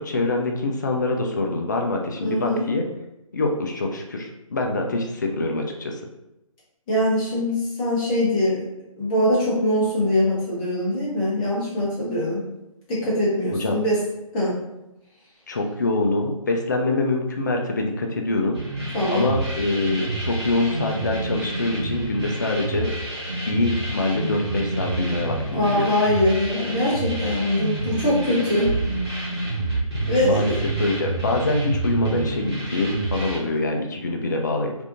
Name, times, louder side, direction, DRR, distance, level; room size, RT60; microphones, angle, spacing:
voice 1, 0.0-2.9 3.3-6.0 13.5-13.8 15.5-18.6 19.1-22.9 23.5-25.9 30.2-30.5 30.8-34.7, left 2 dB, 35° left, 2 dB, 0.4 m, -24 dB
voice 2, 2.2-2.7 6.9-8.6 9.0-12.4 12.9-14.0 14.3-14.6 18.9-19.3 25.5-28.7 30.1-30.6, left 1 dB, 15° left, -7 dB, 0.8 m, -22 dB
sound 1, 18.5-33.4, right 2 dB, 45° right, 1.1 m, -28 dB
3.3 x 2.5 x 2.5 m, 0.91 s
figure-of-eight pair, 145°, 18 cm